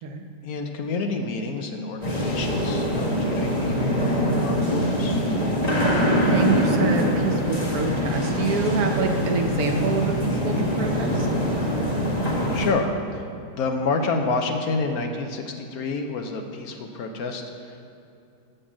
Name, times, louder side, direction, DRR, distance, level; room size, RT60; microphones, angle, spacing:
voice 1, 0.4-5.2 12.1-17.9, left 3 dB, 70° left, 5 dB, 1.1 m, -29 dB
sound 1, 2.0-12.7, equal, 25° left, 1.5 m, -23 dB
voice 2, 6.0-11.3, right 4 dB, 65° right, 4 dB, 1.2 m, -26 dB
8.3 x 5.4 x 7.2 m, 2.7 s
omnidirectional pair, 1.8 m